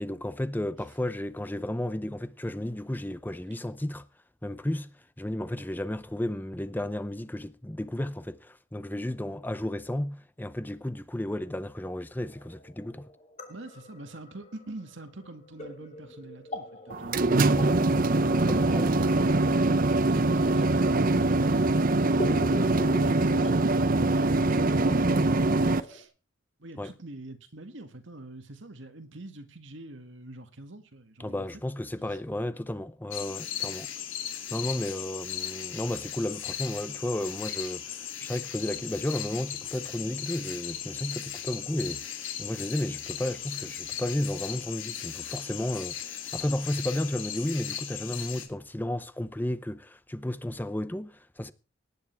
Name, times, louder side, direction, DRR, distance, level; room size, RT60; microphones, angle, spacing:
voice 1, 0.0-4.1 4.4-13.1 18.5-18.9 26.8-26.9 31.2-33.9 34.5-51.5, left 1 dB, 10° left, 0.6 m, -33 dB
sound 1, 12.3-26.0, equal, 35° left, 2.9 m, -43 dB
voice 2, 13.5-23.7 24.1-26.1 26.6-31.5, right 1 dB, 65° right, 2.0 m, -44 dB
sound 2, 16.9-25.8, right 2 dB, 45° right, 0.7 m, -23 dB
sound 3, 33.1-48.5, left 10 dB, 75° left, 2.8 m, -37 dB
18.0 x 9.7 x 4.6 m
head